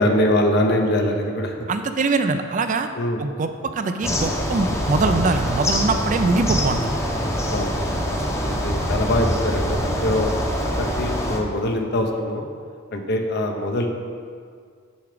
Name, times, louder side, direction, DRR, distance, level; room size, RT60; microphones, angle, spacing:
voice 1, 0.0-1.6 3.0-3.2 7.5-7.8 8.6-10.3 10.8-12.5 12.9-13.9, left 1 dB, 55° left, 4 dB, 0.8 m, -22 dB
voice 2, 1.7-2.9 3.2-7.0, right 3 dB, 40° right, 8 dB, 0.4 m, -22 dB
sound 1, 4.0-11.4, equal, 15° left, 0.8 m, -24 dB
7.1 x 5.8 x 5.0 m, 2.1 s
head